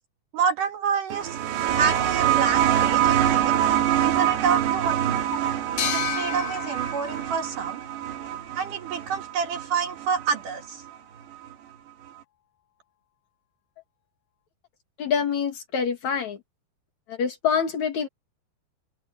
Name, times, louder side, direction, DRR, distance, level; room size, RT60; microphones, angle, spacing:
voice 1, 0.3-1.4 1.7-3.5 4.0-5.2 5.9-7.8 8.5-10.8, right 6 dB, 60° right, 2.8 m, -28 dB
sound 1, 1.1-10.4 11.5-11.6, right 11 dB, 75° right, 3.9 m, -25 dB
sound 2, 5.8-9.1, left 14 dB, 70° left, 2.5 m, -34 dB
voice 2, 15.0-16.4 17.1-18.1, left 7 dB, 50° left, 2.7 m, -26 dB
omnidirectional pair, 5.0 m